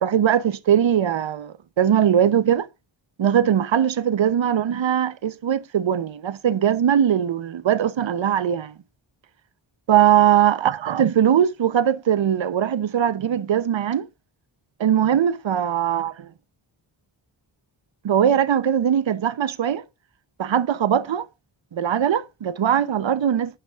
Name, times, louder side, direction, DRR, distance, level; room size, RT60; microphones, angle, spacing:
voice 1, 0.0-2.7 3.2-8.8 9.9-14.1 14.8-16.1 18.0-19.8 20.4-21.3 21.7-23.6, right 9 dB, 65° right, 0.9 m, -20 dB
11.0 x 10.5 x 2.5 m
wide cardioid pair, 125°, 49 cm